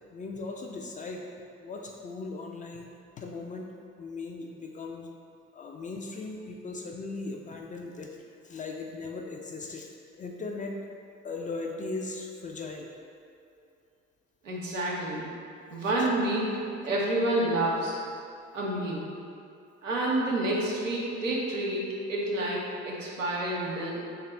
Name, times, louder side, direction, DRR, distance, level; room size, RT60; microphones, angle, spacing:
voice 1, 0.1-1.3 1.6-2.9 3.2-3.7 4.0-5.1 5.5-8.2 8.4-9.9 10.2-10.8 11.2-12.9 16.0-16.1, left 3 dB, 25° left, 1 dB, 0.3 m, -38 dB
voice 2, 14.4-15.3 15.7-18.0 18.5-19.1 19.8-24.1, right 1 dB, 90° right, -4 dB, 0.5 m, -29 dB
3.4 x 2.3 x 4.2 m, 2.4 s
figure-of-eight pair, 40°, 37 cm